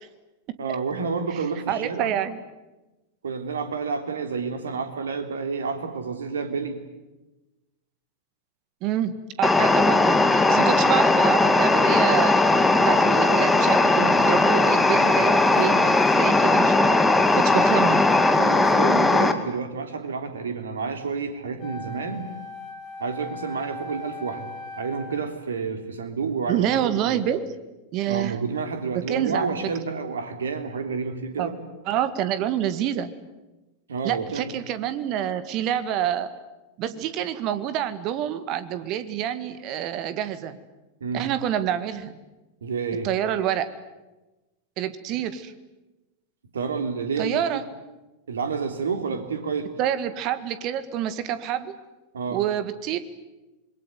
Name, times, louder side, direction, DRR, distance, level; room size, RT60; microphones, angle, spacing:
voice 1, 0.6-2.2 3.2-6.8 18.4-22.3 23.0-24.5 24.8-27.2 28.1-31.6 33.9-34.5 41.0-41.3 42.6-43.1 46.5-47.6 48.3-49.7 52.1-52.4, right 5 dB, 65° right, 7 dB, 3.4 m, -29 dB
voice 2, 1.7-2.4 8.8-12.4 12.9-18.1 26.5-27.6 27.9-28.4 28.9-29.5 31.4-31.5 31.9-33.1 34.0-36.3 36.8-40.6 41.1-42.2 43.0-43.7 44.8-45.5 47.2-47.6 49.8-51.7 52.3-53.0, right 10 dB, 40° right, 13 dB, 1.9 m, -27 dB
sound 1, 9.4-19.3, left 2 dB, 10° left, 2.0 m, -18 dB
Wind instrument woodwind instrument, 21.6-25.4, left 3 dB, 40° left, 5.3 m, -39 dB
26.5 x 22.5 x 9.5 m, 1.1 s
figure-of-eight pair, 90°, 0 cm